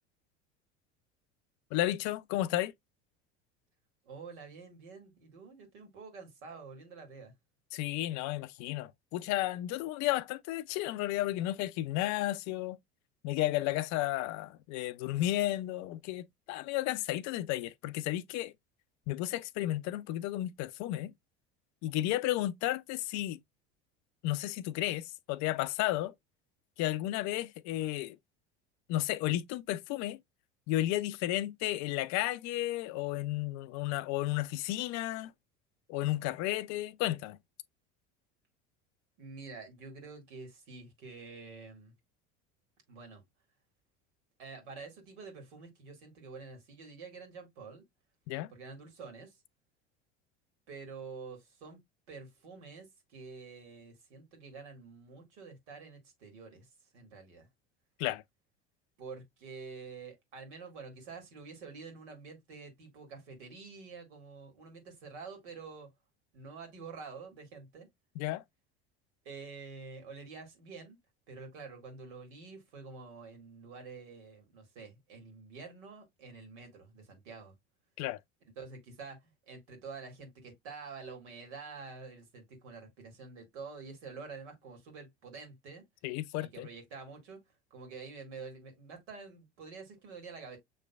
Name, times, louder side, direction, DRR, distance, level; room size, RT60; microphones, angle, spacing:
voice 1, 1.7-2.7 7.7-12.8 13.2-18.5 19.1-21.1 21.8-23.4 24.2-26.1 26.8-28.2 28.9-30.2 30.7-35.3 35.9-37.4 48.3-48.5 58.0-58.2 68.2-68.4 78.0-78.2 86.0-86.7, left 15 dB, 55° left, 0.5 m, -33 dB
voice 2, 4.1-7.3 39.2-41.9 42.9-43.2 44.4-47.8 48.5-49.4 50.7-51.8 52.1-56.7 56.9-57.5 59.0-65.9 66.3-67.9 69.2-71.0 71.3-77.5 78.6-85.8 86.4-87.4 87.7-90.6, right 4 dB, 75° right, 2.1 m, -48 dB
6.4 x 3.2 x 2.3 m
hypercardioid pair, 75°, 35 cm